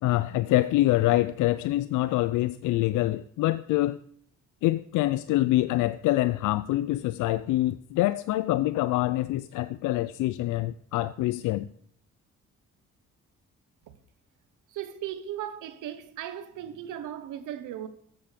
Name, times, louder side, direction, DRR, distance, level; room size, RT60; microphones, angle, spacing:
voice 1, 0.0-4.0 4.6-11.7, left 16 dB, 85° left, 0.5 m, -25 dB
voice 2, 14.7-17.9, right 11 dB, 85° right, 1.0 m, -37 dB
13.0 x 7.0 x 5.1 m
cardioid pair, 90°, 30 cm